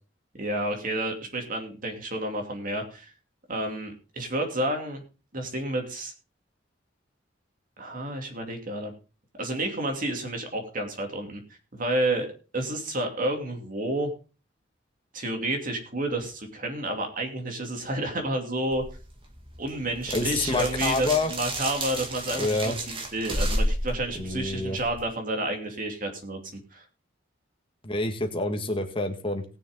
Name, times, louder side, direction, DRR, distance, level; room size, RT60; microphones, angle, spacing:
voice 1, 0.4-3.1 3.5-5.0 5.3-6.1 7.8-8.9 9.4-11.4 11.7-12.3 12.5-14.1 15.1-18.8 19.6-26.8, right 1 dB, 45° right, 3 dB, 2.7 m, -30 dB
sound 1, 18.7-25.0, right 1 dB, 30° right, 2.1 m, -32 dB
voice 2, 20.1-21.3 22.3-22.8 24.1-24.8 27.8-29.4, left 3 dB, 30° left, 5 dB, 1.7 m, -27 dB
19.5 x 6.8 x 3.7 m, 0.33 s
head